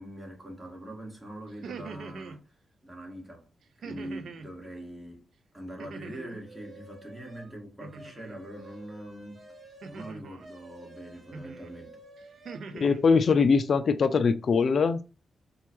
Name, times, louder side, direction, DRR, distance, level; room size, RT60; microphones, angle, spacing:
voice 1, 0.0-2.5 2.8-3.5 3.8-9.4 9.9-12.0, right 1 dB, 20° right, 1.7 m, -43 dB
sound 1, 1.5-2.4 3.8-4.5 5.8-6.5 7.8-8.4 9.8-10.5 11.3-11.7 12.2-13.0, right 4 dB, 75° right, 0.4 m, -42 dB
sound 2, 6.4-7.5 7.9-12.7, right 1 dB, 50° right, 1.5 m, -50 dB
voice 2, 12.7-15.0, left 5 dB, 65° left, 0.3 m, -22 dB
4.3 x 2.3 x 3.0 m
cardioid pair, 55°, 0 cm